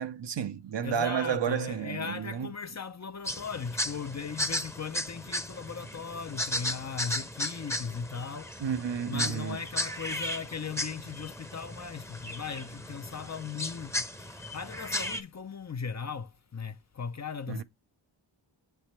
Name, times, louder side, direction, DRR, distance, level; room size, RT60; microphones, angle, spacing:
voice 1, 0.0-2.5 8.6-9.6 17.5-17.6, right 8 dB, 60° right, 0.7 m, -31 dB
voice 2, 0.8-8.7 9.1-17.6, left 6 dB, 35° left, 0.5 m, -38 dB
sound 1, 3.2-15.2, left 1 dB, 5° left, 0.8 m, -35 dB
7.2 x 3.4 x 4.2 m
cardioid pair, 50°, 48 cm